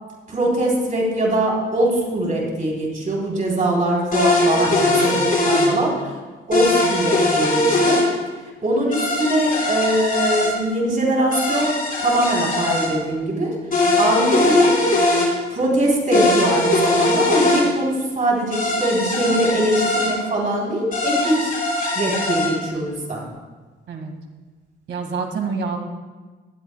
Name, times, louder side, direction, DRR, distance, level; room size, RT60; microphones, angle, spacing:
voice 1, 0.3-5.9 6.5-8.1 8.6-13.6 14.0-14.8 15.5-21.5 22.0-23.2, right 1 dB, 40° right, -2 dB, 3.7 m, -22 dB
sound 1, 4.1-5.7 6.5-8.0 8.9-10.5 11.3-12.9 13.7-15.3 16.1-17.6 18.5-20.1 20.9-22.5, left 2 dB, 40° left, 4.1 m, -20 dB
voice 2, 4.6-5.0 5.5-5.9 23.9-24.1 24.9-25.8, right 5 dB, 65° right, 3 dB, 2.0 m, -28 dB
18.5 x 13.0 x 2.3 m, 1.3 s
cardioid pair, 110°, 20 cm